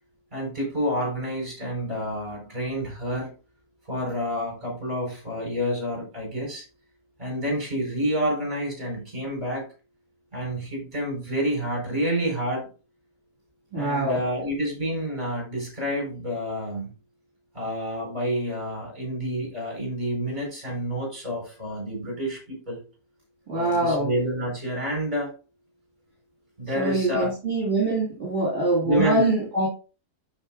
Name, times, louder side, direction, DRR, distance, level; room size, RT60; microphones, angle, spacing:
voice 1, 0.3-3.3 3.9-6.7 7.2-9.7 10.3-12.7 13.7-16.9 17.5-22.8 23.5-25.3 26.6-27.3 28.8-29.3, equal, 30° right, 4.9 m, -29 dB
voice 2, 13.7-14.2 23.5-24.1 26.8-29.7, right 2 dB, 45° right, 2.7 m, -24 dB
12.5 x 4.6 x 2.5 m
omnidirectional pair, 1.6 m